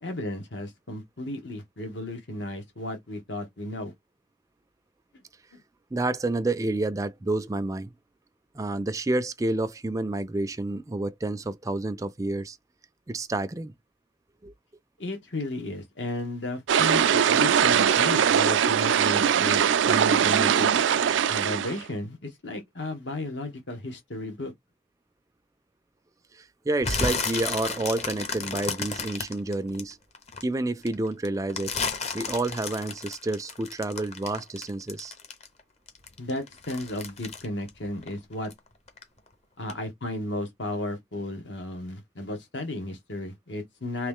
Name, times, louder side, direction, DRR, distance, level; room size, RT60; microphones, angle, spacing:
voice 1, 0.0-3.9 15.0-20.7 21.3-24.5 36.2-38.5 39.6-44.1, left 1 dB, 75° left, 1.3 m, -34 dB
voice 2, 5.9-7.9 8.5-12.6 13.1-13.7 14.4-14.5 26.3-30.0 30.4-31.8 32.1-35.1, right 2 dB, 20° right, 0.4 m, -29 dB
sound 1, 16.7-21.9, right 8 dB, 85° right, 0.4 m, -21 dB
sound 2, 26.8-30.4 30.8-35.6 35.9-38.6 38.9-39.3 39.7-39.8, left 4 dB, 35° left, 0.8 m, -32 dB
3.2 x 3.1 x 3.6 m
head